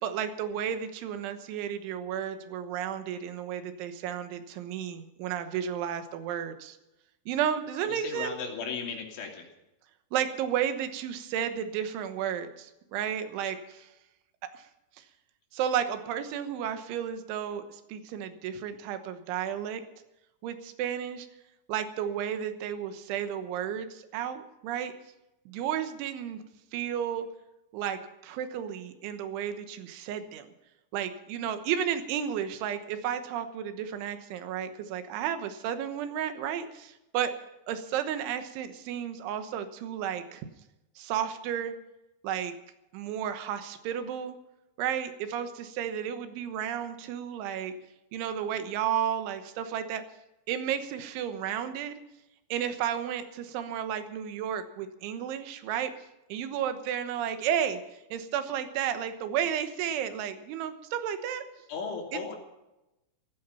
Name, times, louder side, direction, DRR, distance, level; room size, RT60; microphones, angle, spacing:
voice 1, 0.0-6.8 7.3-8.3 10.1-13.9 14.6-14.7 15.5-19.8 20.4-21.3 21.7-24.9 25.5-26.4 26.7-27.3 27.7-30.5 30.9-37.3 37.7-40.5 41.0-41.7 42.2-42.5 42.9-44.4 44.8-47.7 48.1-50.0 50.5-52.0 52.5-55.9 56.3-57.8 58.1-61.4, right 9 dB, 85° right, 9 dB, 3.6 m, -32 dB
voice 2, 7.8-9.5 61.7-62.4, left 5 dB, 85° left, 1 dB, 5.3 m, -36 dB
16.0 x 15.0 x 5.7 m, 0.94 s
omnidirectional pair, 5.3 m